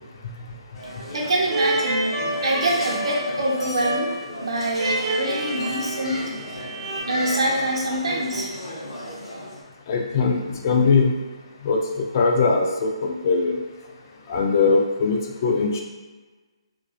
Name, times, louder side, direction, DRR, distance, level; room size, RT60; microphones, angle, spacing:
sound 1, 0.7-9.6, left 1 dB, 55° left, 0.7 m, -36 dB
voice 1, 1.1-2.1 2.4-4.1 4.4-6.3 7.1-8.5, right 1 dB, 70° right, -2 dB, 0.6 m, -25 dB
sound 2, 1.5-7.0, right 1 dB, 30° right, 0.4 m, -28 dB
sound 3, 2.6-3.2 4.0-4.1 4.4-4.5 6.0-6.4 7.1-7.9 8.2-8.3, left 1 dB, 90° left, 0.7 m, -38 dB
voice 2, 9.9-11.1 11.6-13.6 14.3-15.8, left 4 dB, 35° left, 1 dB, 0.3 m, -21 dB
2.3 x 2.1 x 2.5 m, 1.3 s
figure-of-eight pair, 145°, 3 cm